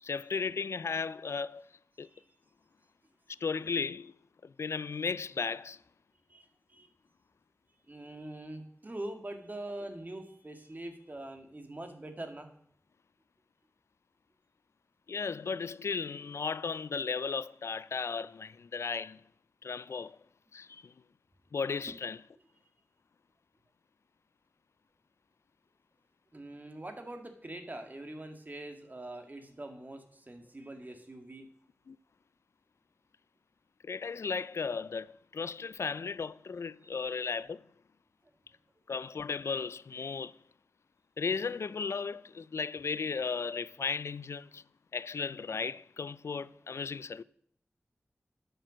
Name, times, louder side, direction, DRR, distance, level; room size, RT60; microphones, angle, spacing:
voice 1, 0.0-1.7 2.0-2.1 3.4-4.1 4.4-5.8 15.1-19.2 19.6-20.2 20.5-20.9 21.5-22.2 31.9-32.0 33.8-37.6 38.9-40.3 41.2-44.6 44.9-47.2, left 5 dB, 75° left, 0.4 m, -35 dB
voice 2, 6.3-6.9 7.9-12.5 21.9-22.0 26.3-31.5 36.8-37.1, right 1 dB, 40° right, 1.9 m, -44 dB
10.0 x 6.9 x 6.3 m
cardioid pair, 45°, 5 cm